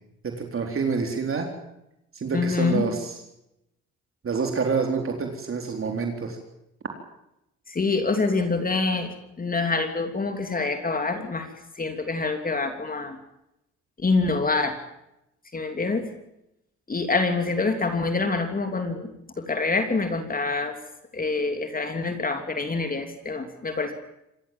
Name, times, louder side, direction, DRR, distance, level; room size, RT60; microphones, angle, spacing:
voice 1, 0.2-1.5 2.1-3.1 4.2-6.4, right 5 dB, 45° right, 3 dB, 3.9 m, -27 dB
voice 2, 2.3-2.8 7.7-11.5 11.7-13.2 14.0-14.8 15.5-16.1 16.9-20.8 21.1-23.9, left 3 dB, 30° left, 6 dB, 3.1 m, -26 dB
26.0 x 19.5 x 7.4 m, 0.85 s
cardioid pair, 90°, 30 cm